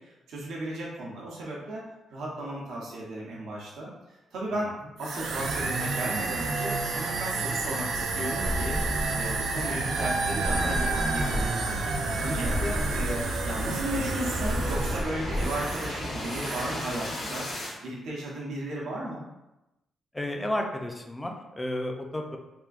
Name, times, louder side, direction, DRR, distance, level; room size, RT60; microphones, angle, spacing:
voice 1, 0.0-3.9 4.3-17.5 17.8-19.2, right 1 dB, 90° right, -4 dB, 0.8 m, -35 dB
sound 1, 5.0-16.0 16.2-16.8, right 3 dB, 70° right, 0.4 m, -30 dB
sound 2, 7.0-17.8, left 1 dB, 75° left, 1.1 m, -37 dB
sound 3, 8.4-9.4 10.4-11.5 11.9-12.0 12.4-13.4 14.4-15.5, equal, 55° left, 0.9 m, -31 dB
voice 2, 20.1-22.4, left 1 dB, 10° left, 2 dB, 0.3 m, -32 dB
3.5 x 2.5 x 2.4 m, 0.95 s
wide cardioid pair, 160°, 0 cm